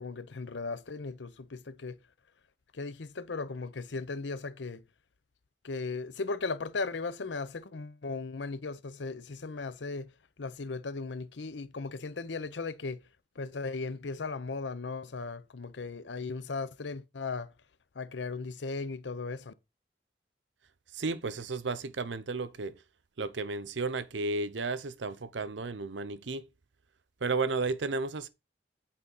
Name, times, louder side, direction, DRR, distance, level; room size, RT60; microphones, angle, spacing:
voice 1, 0.0-2.0 2.7-4.8 5.6-10.1 10.4-13.0 13.4-17.5 17.9-19.5, left 4 dB, 80° left, 0.7 m, -37 dB
voice 2, 20.9-22.8 23.2-26.4 27.2-28.3, right 3 dB, 85° right, 0.7 m, -33 dB
8.6 x 4.2 x 5.4 m
head